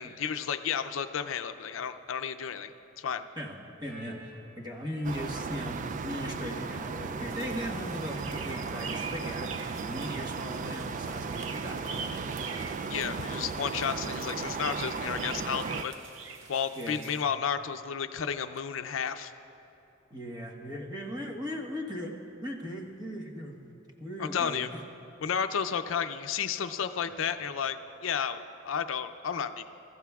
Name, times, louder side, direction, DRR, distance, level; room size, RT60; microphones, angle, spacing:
voice 1, 0.0-3.2 12.9-15.9 16.5-19.3 24.2-24.7 25.2-29.6, left 7 dB, 85° left, 10 dB, 0.5 m, -32 dB
sound 1, 3.8-8.9, left 1 dB, 5° right, 3.2 m, -52 dB
voice 2, 3.8-12.2 12.8-12.9 16.8-17.0 20.1-22.1 22.4-23.6 24.0-24.7, equal, 20° right, 0 dB, 1.3 m, -38 dB
sound 2, 5.0-15.8, right 5 dB, 40° right, 0.3 m, -36 dB
sound 3, 7.3-17.2, right 5 dB, 85° right, 0.8 m, -44 dB
22.0 x 14.5 x 2.3 m, 2.9 s
head